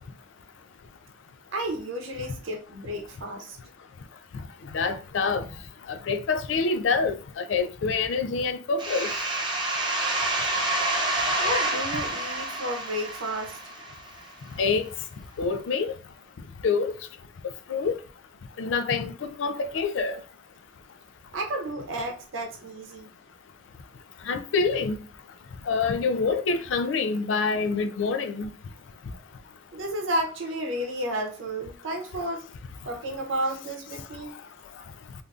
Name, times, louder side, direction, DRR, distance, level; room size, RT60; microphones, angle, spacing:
voice 1, 1.5-3.6 11.4-13.6 21.3-23.1 29.7-32.4 32.8-34.4, right 1 dB, 90° right, 0.7 m, -32 dB
voice 2, 4.7-5.5 5.9-9.1 14.6-14.9 15.4-15.9 16.6-16.9 17.7-18.0 18.6-20.2 24.3-25.0 25.7-28.5, left 4 dB, 70° left, 0.4 m, -26 dB
sound 1, 8.8-14.3, right 2 dB, 25° right, 0.6 m, -28 dB
3.4 x 2.6 x 2.3 m
head